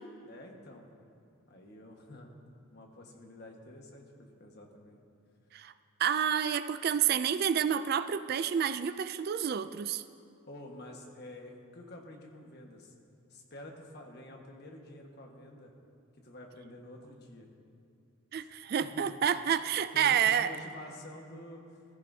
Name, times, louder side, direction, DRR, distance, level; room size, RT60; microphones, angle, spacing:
voice 1, 0.2-0.9 1.5-2.4 2.7-5.0 10.5-12.9 13.3-15.7 16.1-17.5 18.4-18.5 18.8-18.9 19.9-21.6, left 1 dB, 50° left, 1 dB, 1.5 m, -49 dB
voice 2, 6.0-10.0 18.3-20.5, right 8 dB, 45° right, 12 dB, 0.3 m, -29 dB
17.5 x 15.0 x 2.8 m, 2.5 s
head